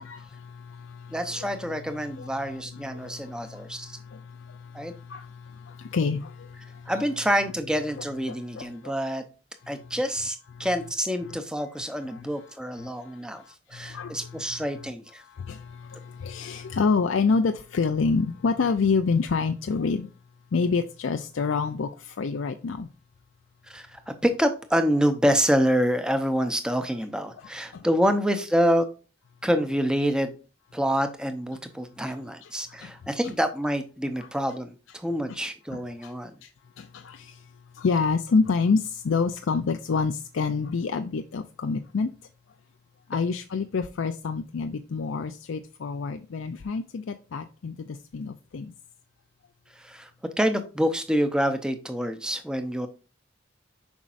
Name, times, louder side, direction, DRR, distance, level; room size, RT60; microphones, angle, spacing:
voice 1, 0.0-1.6 2.0-7.0 8.3-8.9 9.6-9.9 10.5-10.7 11.3-11.4 12.1-14.9 15.2-20.1 20.5-22.9 27.4-27.9 32.1-32.2 32.4-32.9 34.2-34.3 35.7-36.1 36.4-36.5 36.8-42.1 43.1-48.7, left 4 dB, 85° left, 0.4 m, -29 dB
voice 2, 1.1-4.0 4.7-4.9 6.9-9.3 9.7-13.4 13.7-15.2 23.7-28.9 29.4-30.3 30.7-36.3 49.8-50.1 50.4-52.9, equal, 5° right, 0.7 m, -27 dB
7.1 x 5.2 x 2.5 m
head